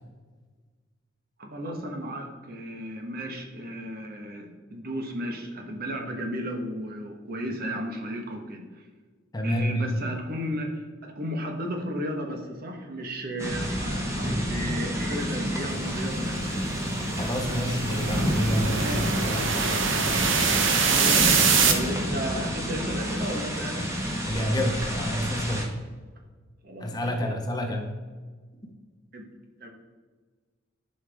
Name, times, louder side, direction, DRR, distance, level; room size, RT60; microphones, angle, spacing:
voice 1, 1.4-8.6 9.4-16.6 18.8-19.0 19.7-20.4 20.8-23.9 26.6-27.4 27.7-27.8 29.1-29.3 29.6-29.7, equal, 50° right, 3 dB, 1.3 m, -34 dB
voice 2, 9.3-9.9 17.2-19.8 24.3-25.7 26.8-27.9, equal, 20° left, 3 dB, 1.0 m, -29 dB
sound 1, 13.4-25.6, equal, 15° right, 1.4 m, -29 dB
sound 2, 15.7-21.7, right 5 dB, 70° right, 1.0 m, -25 dB
11.0 x 5.6 x 3.5 m, 1.4 s
head